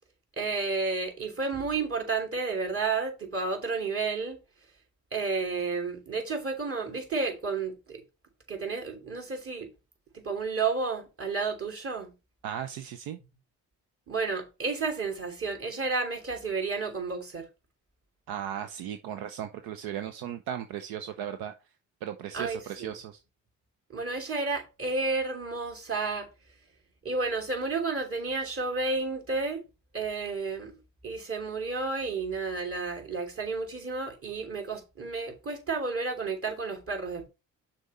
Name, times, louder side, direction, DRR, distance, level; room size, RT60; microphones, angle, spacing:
voice 1, 0.4-4.4 5.1-8.0 8.5-9.7 10.1-12.1 14.1-17.5 22.3-22.9 23.9-26.3 27.0-29.6 29.9-30.7 31.0-37.3, right 4 dB, 40° right, 3.1 m, -31 dB
voice 2, 12.4-13.2 18.3-21.5 22.0-23.2, right 10 dB, 80° right, 0.7 m, -36 dB
6.3 x 4.2 x 5.5 m
supercardioid pair, 65°, 36 cm